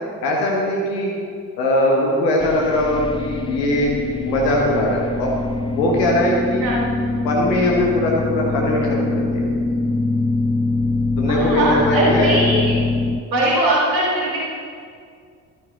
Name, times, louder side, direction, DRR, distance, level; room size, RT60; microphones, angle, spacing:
voice 1, 0.2-1.1 1.6-3.9 4.2-5.3 5.7-6.7 7.2-9.4 11.2-12.4, left 1 dB, 75° left, -1 dB, 1.4 m, -20 dB
sound 1, 2.4-13.2, left 3 dB, 10° left, 0.4 m, -23 dB
voice 2, 11.3-12.8 13.3-14.4, right 1 dB, 85° right, -4 dB, 1.9 m, -20 dB
12.0 x 10.0 x 3.9 m, 2.2 s
figure-of-eight pair, 45°, 50 cm